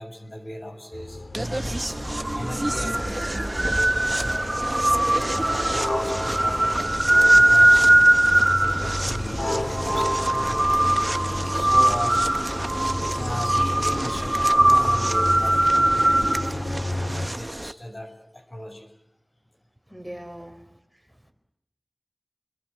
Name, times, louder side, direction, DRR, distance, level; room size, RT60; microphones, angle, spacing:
voice 1, 0.0-2.0 2.3-4.5 5.1-6.8 7.3-8.1 8.6-10.9 11.5-12.3 13.1-16.3 17.0-18.9, equal, 40° left, 5 dB, 6.5 m, -37 dB
sound 1, 0.9-17.3, left 1 dB, 65° left, 2.4 m, -32 dB
sound 2, 1.3-17.7, right 1 dB, 35° right, 1.1 m, -21 dB
voice 2, 19.9-20.7, equal, 5° right, 4 dB, 4.7 m, -39 dB
28.0 x 22.5 x 8.7 m, 0.78 s
wide cardioid pair, 45°, 0 cm